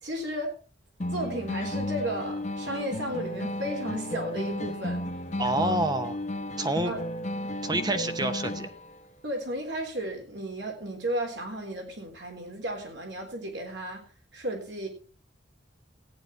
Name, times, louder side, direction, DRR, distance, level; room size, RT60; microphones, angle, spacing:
voice 1, 0.0-0.5 1.1-5.0 5.6-5.8 6.8-7.0 9.2-14.0 14.3-14.9, right 1 dB, 65° right, 3 dB, 3.5 m, -34 dB
sound 1, 1.0-9.0, left 1 dB, 35° left, 1.0 m, -33 dB
voice 2, 5.4-6.2 6.6-6.9 7.6-8.7, right 1 dB, 20° right, 9 dB, 0.8 m, -27 dB
14.5 x 9.6 x 4.4 m, 0.38 s
head